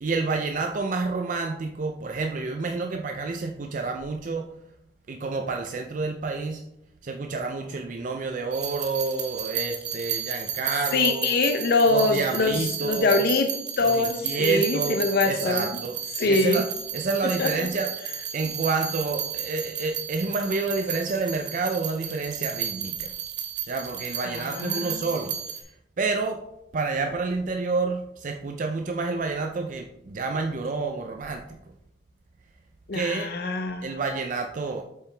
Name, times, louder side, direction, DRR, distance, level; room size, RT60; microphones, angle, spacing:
voice 1, 0.0-4.5 5.1-6.7 7.0-11.3 11.9-13.2 13.8-16.0 16.2-16.7 16.9-17.9 18.3-23.1 23.7-25.4 26.0-26.4 26.7-31.6 32.9-33.3 33.8-34.8, right 4 dB, 45° right, 3 dB, 0.4 m, -29 dB
sound 1, 8.5-25.6, right 9 dB, 75° right, 1.0 m, -33 dB
voice 2, 10.9-13.5 13.8-15.7 16.2-16.6 17.4-17.7 24.2-25.0 32.9-33.9, left 3 dB, 60° left, 6 dB, 0.5 m, -24 dB
7.1 x 4.7 x 3.3 m, 0.81 s
head